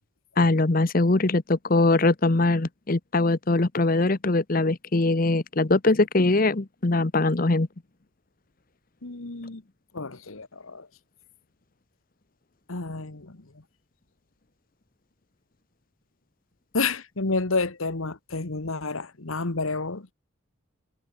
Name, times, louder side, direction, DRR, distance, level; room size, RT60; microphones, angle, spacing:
voice 1, 0.4-7.7, left 2 dB, 40° left, 0.9 m, -22 dB
voice 2, 9.0-9.6 9.9-10.9 12.7-13.4 16.7-20.1, left 3 dB, 75° left, 1.5 m, -30 dB
head